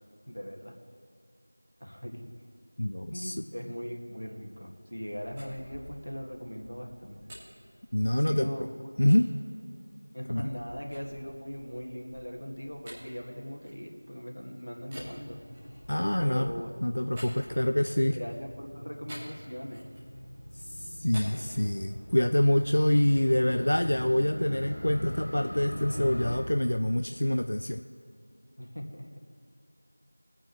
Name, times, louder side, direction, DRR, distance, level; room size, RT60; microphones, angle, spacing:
voice 1, 0.3-0.8 1.8-2.3 3.1-7.3 8.1-8.7 10.1-15.4 16.2-16.7 18.1-19.9 28.6-29.1, equal, 85° left, 1 dB, 2.1 m, -39 dB
voice 2, 2.8-3.4 7.9-8.5 9.0-9.3 10.3-10.5 15.9-16.5 16.8-18.2 20.7-27.8, left 1 dB, 50° left, 7 dB, 0.4 m, -26 dB
sound 1, 5.1-8.5 9.1-9.3 9.8-14.3 14.8-18.1 19.1-20.2 20.5-22.3, equal, 10° right, 1.3 m, -50 dB
Motorcycle, 14.8-26.3, equal, 10° left, 2.9 m, -41 dB
21.5 x 8.9 x 3.2 m, 2.6 s
figure-of-eight pair, 175°, 0 cm